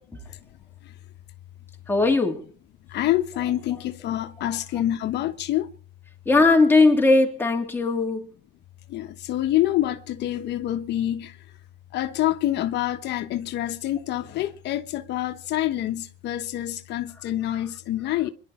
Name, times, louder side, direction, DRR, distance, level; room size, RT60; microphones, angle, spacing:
voice 1, 1.9-2.5 4.4-4.6 6.2-8.3, left 3 dB, 10° left, 3.2 m, -19 dB
voice 2, 2.9-5.7 8.9-11.4 11.9-18.3, left 13 dB, 65° left, 1.2 m, -26 dB
26.0 x 11.5 x 4.4 m
cardioid pair, 135°, 19 cm